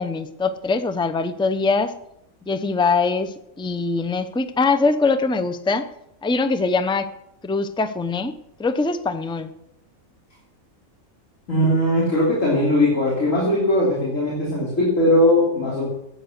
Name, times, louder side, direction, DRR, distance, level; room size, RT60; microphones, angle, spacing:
voice 1, 0.0-1.9 2.5-5.9 6.2-7.1 7.4-8.3 8.6-9.5, left 4 dB, 5° left, 9 dB, 0.5 m, -22 dB
voice 2, 11.5-15.9, left 1 dB, 70° left, -6 dB, 3.7 m, -19 dB
15.5 x 8.5 x 6.5 m, 0.82 s
omnidirectional pair, 1.4 m